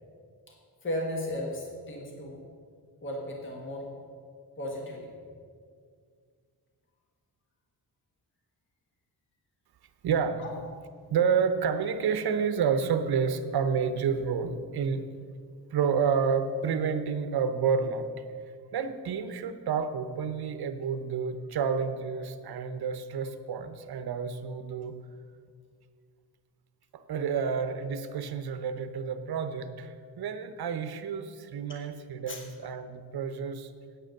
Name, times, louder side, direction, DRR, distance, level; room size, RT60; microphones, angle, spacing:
voice 1, 0.8-2.4 3.0-3.9 4.6-5.1 10.4-10.5 32.3-32.4, left 1 dB, 30° left, 0 dB, 1.5 m, -35 dB
voice 2, 10.0-10.4 11.1-15.0 15.7-18.1 18.7-25.0 26.9-33.7, right 6 dB, 65° right, 10 dB, 0.8 m, -29 dB
9.1 x 8.7 x 6.5 m, 2.1 s
wide cardioid pair, 175°, 40 cm